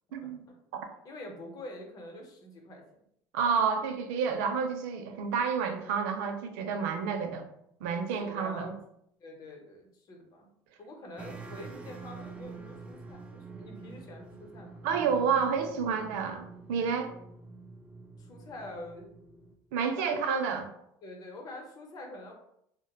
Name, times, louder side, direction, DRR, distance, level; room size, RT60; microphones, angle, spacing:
voice 1, 0.2-0.5 1.0-2.8 8.2-8.7 9.2-10.5 10.8-14.8 18.2-19.1 19.9-20.4 21.0-22.3, left 1 dB, 45° left, 1 dB, 0.7 m, -45 dB
voice 2, 3.3-7.4 7.8-8.7 14.8-17.1 19.7-20.6, right 6 dB, 85° right, 6 dB, 0.4 m, -29 dB
sound 1, 11.2-19.5, right 3 dB, 15° right, 0.3 m, -47 dB
2.8 x 2.0 x 2.3 m, 0.73 s
supercardioid pair, 95°, 9 cm